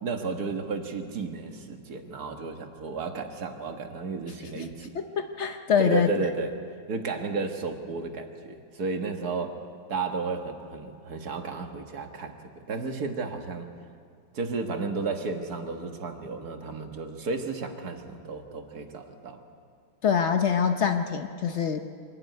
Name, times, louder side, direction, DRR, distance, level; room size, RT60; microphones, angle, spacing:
voice 1, 0.0-5.0 5.8-6.5 6.9-9.6 9.9-13.7 14.3-19.4, right 4 dB, 50° right, 4 dB, 1.9 m, -33 dB
voice 2, 4.9-6.1 20.0-21.8, left 7 dB, 80° left, 6 dB, 0.6 m, -25 dB
24.5 x 12.0 x 9.4 m, 2.2 s
omnidirectional pair, 2.3 m